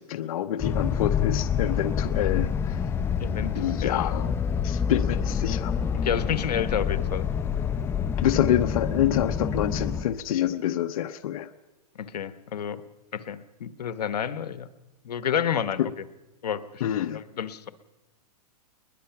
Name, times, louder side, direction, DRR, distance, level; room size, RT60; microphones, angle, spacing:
voice 1, 0.0-2.8 3.5-4.3 4.6-5.7 8.2-11.5 15.8-15.9 16.8-17.2, left 11 dB, 60° left, 11 dB, 0.9 m, -27 dB
sound 1, 0.6-10.0, left 7 dB, 10° left, 0.7 m, -27 dB
voice 2, 3.2-4.1 5.9-7.3 12.0-12.8 13.1-14.7 15.0-15.8 16.4-17.7, left 8 dB, 90° left, 13 dB, 1.2 m, -30 dB
22.0 x 21.0 x 5.9 m, 1.1 s
hypercardioid pair, 150°, 20 cm